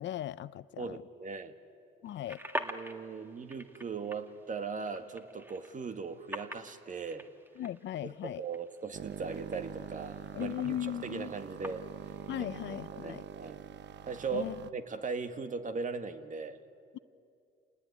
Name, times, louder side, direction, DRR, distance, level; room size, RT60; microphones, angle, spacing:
voice 1, 0.0-1.0 2.0-2.4 7.6-8.4 10.3-11.3 12.3-13.2 14.3-14.6, left 12 dB, 65° left, 0.6 m, -37 dB
voice 2, 0.8-1.5 2.6-7.3 8.0-11.8 12.4-12.5 12.9-13.6 14.0-16.6, right 5 dB, 40° right, 1.8 m, -39 dB
sound 1, 2.1-12.6, right 1 dB, 10° right, 1.8 m, -46 dB
sound 2, 8.9-14.7, right 9 dB, 60° right, 0.9 m, -45 dB
28.5 x 19.0 x 9.8 m
cardioid pair, 90°, 20 cm